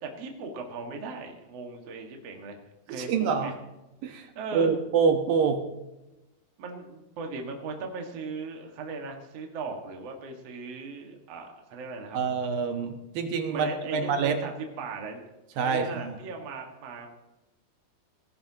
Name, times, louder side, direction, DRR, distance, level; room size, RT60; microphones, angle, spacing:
voice 1, 0.0-2.6 2.9-3.6 4.4-4.7 6.6-12.2 13.5-15.2 15.6-17.1, right 4 dB, 50° right, 2 dB, 2.5 m, -38 dB
voice 2, 3.0-3.5 4.0-4.3 4.5-5.7 12.1-14.4 15.6-16.1, right 5 dB, 75° right, 5 dB, 2.9 m, -26 dB
18.5 x 16.0 x 2.9 m, 0.97 s
omnidirectional pair, 4.3 m